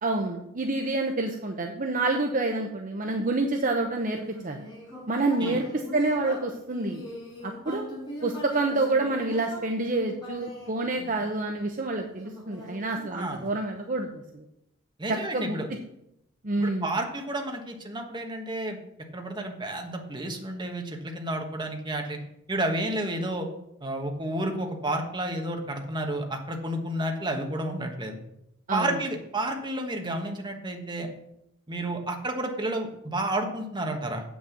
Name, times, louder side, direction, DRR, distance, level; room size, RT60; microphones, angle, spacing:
voice 1, 0.0-4.6 5.1-7.0 7.4-7.8 8.2-14.4 15.1-15.6 16.4-16.9 28.7-29.0, right 2 dB, 40° right, 3 dB, 0.8 m, -28 dB
Human voice, 4.3-11.6 12.2-13.7, left 1 dB, 25° left, 4.4 m, -41 dB
voice 2, 13.1-13.5 15.0-15.7 16.6-18.8 19.1-22.2 22.5-23.5 23.8-28.2 28.7-31.1 31.7-34.2, right 1 dB, 20° right, 3 dB, 1.3 m, -31 dB
7.9 x 6.3 x 7.0 m, 0.81 s
head